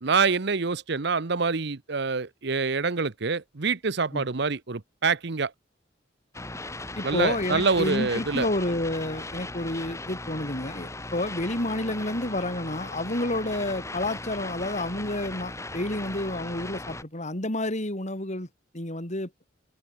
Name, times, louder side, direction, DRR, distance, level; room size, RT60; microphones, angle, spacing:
voice 1, 0.0-5.5 7.0-8.5, right 4 dB, 65° right, 1.0 m, -26 dB
sound 1, 6.3-17.0, left 2 dB, 15° left, 3.9 m, -38 dB
voice 2, 7.0-18.5 18.7-19.3, left 1 dB, 40° left, 3.8 m, -30 dB
head